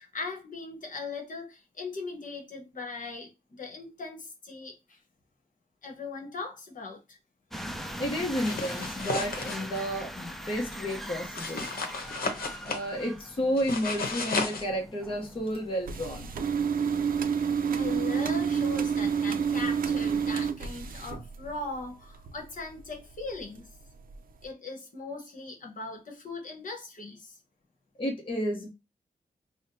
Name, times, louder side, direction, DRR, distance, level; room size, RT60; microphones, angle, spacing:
voice 1, 0.0-5.0 5.8-7.2 17.7-23.7 24.4-27.4, left 3 dB, 60° left, 1.1 m, -39 dB
sound 1, 7.5-16.6, equal, ahead, 0.3 m, -41 dB
voice 2, 8.0-11.7 12.6-16.3 28.0-28.7, equal, 35° left, 0.8 m, -31 dB
sound 2, 8.3-9.8 11.4-12.9 13.6-14.6, left 3 dB, 75° left, 0.9 m, -33 dB
sound 3, 15.9-21.8 22.1-22.9 23.3-23.6 24.1-24.2 24.4-24.5, right 6 dB, 70° right, 0.4 m, -28 dB
5.6 x 2.1 x 2.7 m
wide cardioid pair, 170°, 15 cm